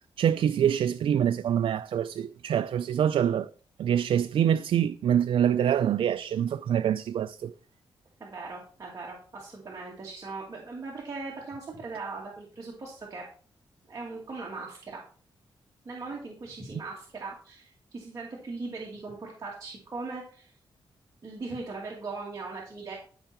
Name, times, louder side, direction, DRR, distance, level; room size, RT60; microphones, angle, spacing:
voice 1, 0.2-3.5 3.8-7.5, right 9 dB, 75° right, 0.4 m, -25 dB
voice 2, 8.2-13.2 13.9-15.0 15.8-20.5 21.2-22.9, right 3 dB, 35° right, 2.4 m, -39 dB
13.5 x 5.7 x 4.4 m
wide cardioid pair, 145°, 9 cm